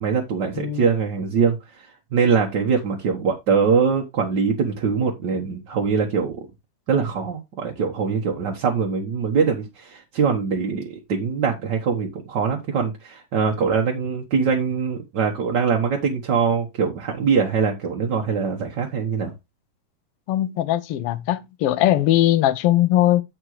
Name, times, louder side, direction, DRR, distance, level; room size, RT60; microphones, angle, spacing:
voice 1, 0.0-1.6 2.1-6.4 6.9-19.3, right 5 dB, 50° right, 1.4 m, -22 dB
voice 2, 20.3-23.2, left 13 dB, 70° left, 1.4 m, -20 dB
8.7 x 7.4 x 3.2 m
omnidirectional pair, 3.4 m